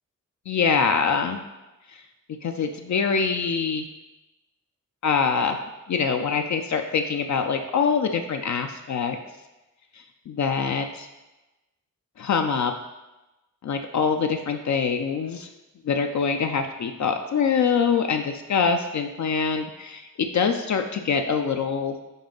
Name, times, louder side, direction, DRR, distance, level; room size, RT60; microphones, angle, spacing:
voice 1, 0.5-1.4 2.4-3.9 5.0-5.6 5.9-9.2 10.3-11.1 12.2-12.7 13.6-15.5 15.8-22.0, left 6 dB, 60° left, 5 dB, 0.4 m, -24 dB
5.4 x 4.7 x 3.8 m, 1.0 s
wide cardioid pair, 95°, 32 cm